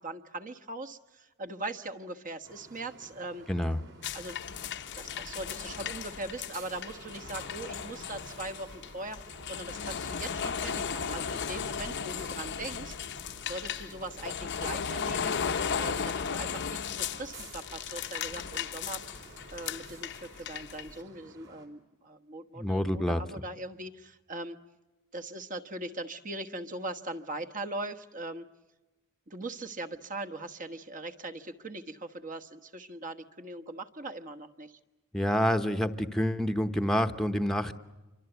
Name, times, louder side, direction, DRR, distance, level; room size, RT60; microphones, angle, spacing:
voice 1, 0.0-3.5 4.1-4.4 4.9-13.0 13.5-15.4 15.8-19.0 19.5-24.6 25.1-28.5 29.3-34.8, right 2 dB, 40° right, 9 dB, 1.3 m, -40 dB
sound 1, 2.4-21.7, right 2 dB, 60° right, 4.6 m, -53 dB
voice 2, 3.5-3.8 22.5-23.2 35.1-37.7, equal, ahead, 7 dB, 1.0 m, -27 dB
sound 2, 4.0-20.9, left 7 dB, 55° left, 0.8 m, -36 dB
27.5 x 24.5 x 8.1 m, 1.1 s
head